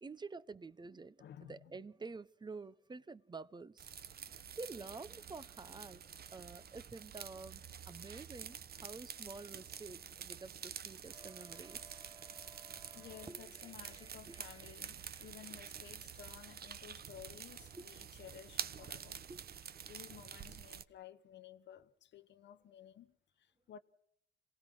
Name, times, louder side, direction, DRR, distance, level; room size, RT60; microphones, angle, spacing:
voice 1, 0.0-3.9 4.1-6.0 6.3-14.5 15.0-15.2 17.7-17.9 19.3-19.4, right 3 dB, 20° right, 0.9 m, -50 dB
voice 2, 1.2-1.7 12.9-19.3 19.8-23.8, left 10 dB, 65° left, 1.0 m, -55 dB
sound 1, 3.8-20.8, right 8 dB, 50° right, 1.1 m, -48 dB
26.5 x 18.0 x 6.2 m
cardioid pair, 90°, 20 cm